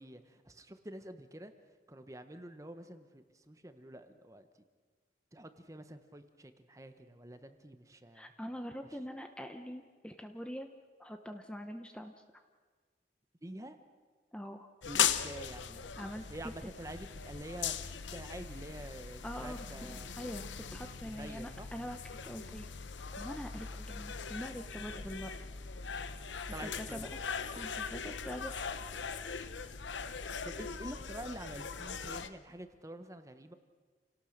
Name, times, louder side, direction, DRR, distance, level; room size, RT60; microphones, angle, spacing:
voice 1, 0.0-1.5 1.9-4.5 5.3-8.3 13.4-13.8 14.9-15.9 16.3-20.1 21.0-21.7 26.5-27.1 30.4-33.5, right 1 dB, 15° right, 9 dB, 1.1 m, -47 dB
voice 2, 8.1-10.7 11.0-12.1 14.3-14.7 16.0-16.7 19.2-22.7 23.2-25.3 26.6-27.1 27.6-28.6, equal, 5° left, 6 dB, 0.9 m, -44 dB
sound 1, 14.8-32.3, left 7 dB, 85° left, 0.9 m, -39 dB
29.0 x 18.0 x 6.5 m, 1.5 s
head